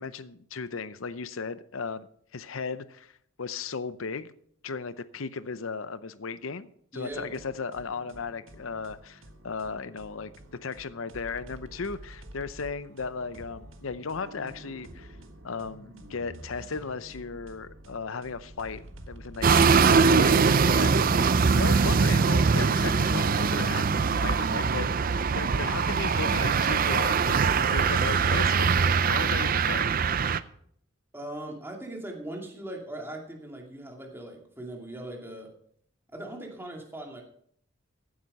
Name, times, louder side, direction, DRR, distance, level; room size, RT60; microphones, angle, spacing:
voice 1, 0.0-2.1 2.3-3.1 3.4-4.3 4.6-10.3 10.6-15.1 15.4-29.9, left 5 dB, 80° left, 0.7 m, -36 dB
voice 2, 6.9-7.3 31.1-35.5 36.1-37.2, right 1 dB, 10° right, 2.4 m, -40 dB
sound 1, 7.1-27.1, right 1 dB, 70° right, 1.6 m, -48 dB
sound 2, 19.4-30.4, right 5 dB, 45° right, 0.5 m, -22 dB
15.0 x 8.8 x 5.4 m
head